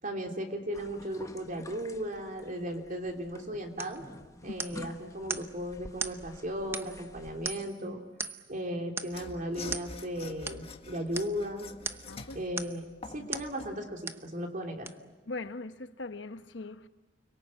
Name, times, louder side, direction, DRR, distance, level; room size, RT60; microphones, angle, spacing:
voice 1, 0.0-4.0 4.4-8.0 8.5-11.7 12.3-14.9, equal, 45° right, 3.2 m, -36 dB
sound 1, 0.7-7.5, left 1 dB, 20° left, 1.1 m, -50 dB
sound 2, 3.8-4.0 4.6-4.9 5.3-5.5 6.0-6.2 6.7-7.1 7.4-7.8 8.2-8.5 9.0-9.2 9.7-9.9 10.5-10.6 11.1-11.3 11.8-12.1 12.6-12.8 13.3-13.5 14.1-14.3 14.9-15.0, right 3 dB, 15° right, 0.8 m, -37 dB
Mechanisms / Sawing, 9.1-13.8, left 3 dB, 35° left, 1.8 m, -46 dB
voice 2, 12.0-12.4 13.2-13.3 15.3-16.9, left 3 dB, 80° left, 1.1 m, -40 dB
30.0 x 22.5 x 8.6 m
head